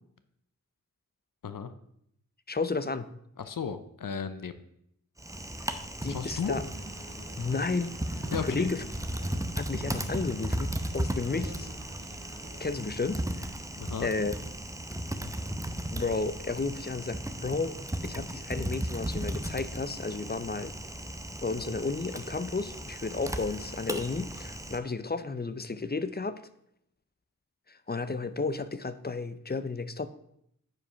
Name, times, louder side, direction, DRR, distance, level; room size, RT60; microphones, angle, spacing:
voice 1, 2.5-3.1 5.7-6.6 7.4-7.9 8.5-8.8 9.6-11.7 12.6-13.5 14.0-14.3 15.9-20.7 21.4-26.4 27.7-30.1, left 3 dB, 30° left, 12 dB, 0.5 m, -32 dB
voice 2, 3.4-4.5 6.1-6.5 8.3-8.7 13.8-14.1, left 6 dB, 80° left, 10 dB, 0.6 m, -34 dB
Typing, 5.2-24.8, right 1 dB, 10° right, 0.7 m, -36 dB
sound 1, 6.4-9.4 9.8-12.9, right 2 dB, 55° right, 1.6 m, -50 dB
7.8 x 4.8 x 5.6 m, 0.74 s
wide cardioid pair, 55°, 33 cm